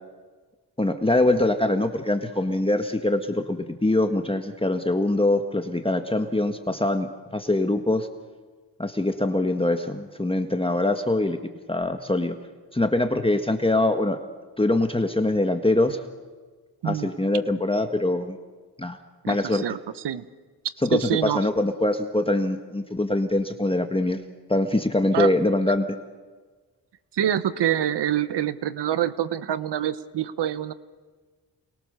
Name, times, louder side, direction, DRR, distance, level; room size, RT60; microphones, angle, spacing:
voice 1, 0.8-7.1 7.3-8.1 8.8-11.4 11.7-12.4 12.7-14.2 14.6-16.0 16.8-18.4 18.8-19.0 19.3-19.6 20.8-24.2 24.5-26.0, left 2 dB, 15° left, 6 dB, 1.5 m, -23 dB
voice 2, 19.2-19.8 20.0-20.2 20.9-21.4 25.1-25.3 27.1-30.7, right 11 dB, 80° right, 14 dB, 1.0 m, -26 dB
29.0 x 22.0 x 6.8 m, 1.4 s
cardioid pair, 75°, 41 cm